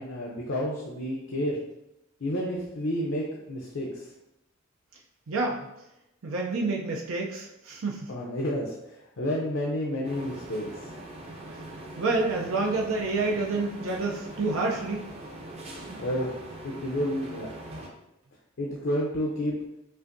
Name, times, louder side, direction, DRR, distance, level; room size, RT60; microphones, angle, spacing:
voice 1, 0.0-1.6 2.2-4.1 8.1-10.9 16.0-16.3 16.6-17.5 18.6-19.6, equal, 65° left, -4 dB, 0.6 m, -30 dB
voice 2, 5.3-5.6 6.2-8.1 12.0-15.1, right 3 dB, 80° right, 0 dB, 0.5 m, -28 dB
sound 1, 10.0-17.9, right 1 dB, 30° right, 0.6 m, -42 dB
5.5 x 2.6 x 2.6 m, 0.88 s
head